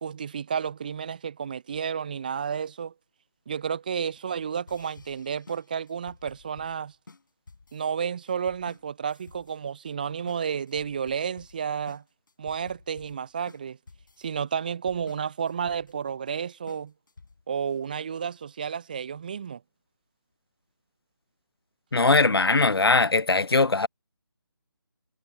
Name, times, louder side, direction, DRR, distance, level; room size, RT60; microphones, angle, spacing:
voice 1, 0.0-2.9 3.5-6.9 7.7-12.0 12.4-13.8 14.2-16.9 17.5-19.6, right 7 dB, 20° right, 0.5 m, -31 dB
sound 1, 4.7-17.6, left 3 dB, 55° left, 6.2 m, -52 dB
voice 2, 21.9-23.9, left 3 dB, 75° left, 0.6 m, -20 dB
figure-of-eight pair, 155°, 13 cm